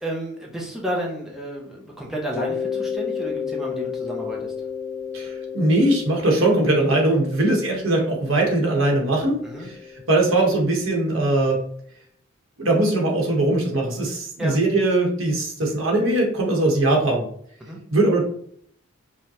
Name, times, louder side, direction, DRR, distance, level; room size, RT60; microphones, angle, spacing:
voice 1, 0.0-4.5 9.4-9.7 14.4-14.6 17.6-17.8, right 1 dB, ahead, -3 dB, 0.6 m, -31 dB
Mallet percussion, 2.3-10.9, left 6 dB, 15° left, 1.1 m, -32 dB
voice 2, 5.1-9.8 10.1-11.6 12.6-17.3 17.9-18.2, right 2 dB, 70° right, 0 dB, 1.1 m, -20 dB
4.9 x 2.2 x 2.8 m, 0.63 s
head